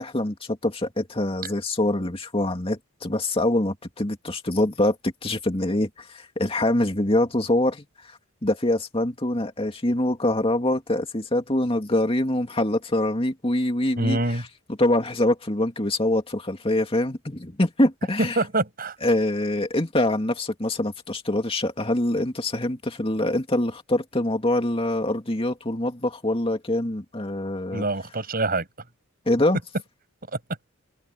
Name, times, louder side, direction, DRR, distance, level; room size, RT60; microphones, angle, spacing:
voice 1, 0.0-18.4 19.0-27.8 29.3-29.6, left 1 dB, 25° left, 2.5 m, -24 dB
voice 2, 14.0-14.4 18.2-18.9 27.7-28.6, right 2 dB, 45° right, 7.7 m, -25 dB
head